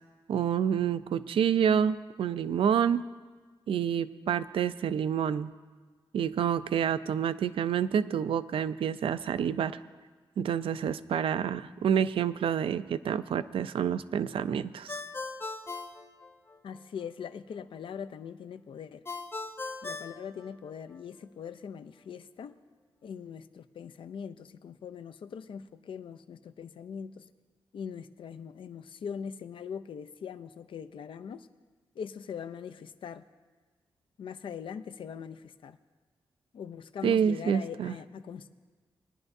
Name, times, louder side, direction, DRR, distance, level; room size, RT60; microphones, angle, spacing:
voice 1, 0.3-3.0 3.7-5.5 6.1-9.8 10.4-15.0 37.0-38.0, right 8 dB, 80° right, 14 dB, 0.4 m, -28 dB
Ringtone, 14.9-16.8 19.1-21.0, left 3 dB, 25° left, 0.7 m, -39 dB
voice 2, 16.6-19.0 19.8-22.6 23.0-27.3 27.7-31.5 32.0-33.2 34.2-35.8 36.5-38.6, left 7 dB, 70° left, 11 dB, 0.5 m, -41 dB
21.5 x 11.0 x 2.7 m, 1.4 s
wide cardioid pair, 125°, 9 cm